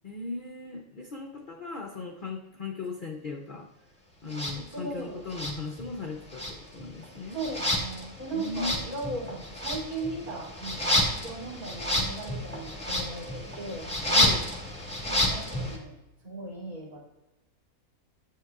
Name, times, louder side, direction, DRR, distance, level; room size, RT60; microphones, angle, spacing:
voice 1, 0.0-3.7 4.2-7.4 8.3-9.0 14.1-14.5, left 3 dB, 60° left, 2 dB, 0.5 m, -37 dB
sound 1, 4.3-4.6 5.3-6.1 6.3-15.8, left 1 dB, 5° left, 1.3 m, -30 dB
voice 2, 4.7-5.3 7.3-13.9 15.0-15.9 16.2-17.2, right 2 dB, 85° right, -7 dB, 3.4 m, -37 dB
9.4 x 8.1 x 2.3 m, 1.0 s
omnidirectional pair, 1.6 m